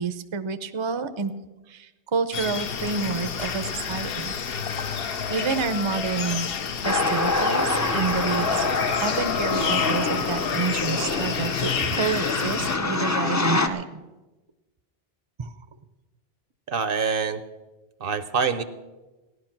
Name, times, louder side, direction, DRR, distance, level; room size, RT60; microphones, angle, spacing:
voice 1, 0.0-1.3 1.7-4.3 5.3-6.5 6.8-8.7 9.0-14.0 15.4-15.5, right 5 dB, 35° right, 11 dB, 0.6 m, -29 dB
sound 1, 2.3-12.8, left 6 dB, 65° left, 1.0 m, -29 dB
sound 2, 6.8-13.7, left 3 dB, 20° left, 0.6 m, -26 dB
voice 2, 16.7-17.4 18.0-18.6, right 5 dB, 60° right, 13 dB, 0.9 m, -25 dB
16.0 x 11.0 x 5.9 m, 1.1 s
omnidirectional pair, 1.1 m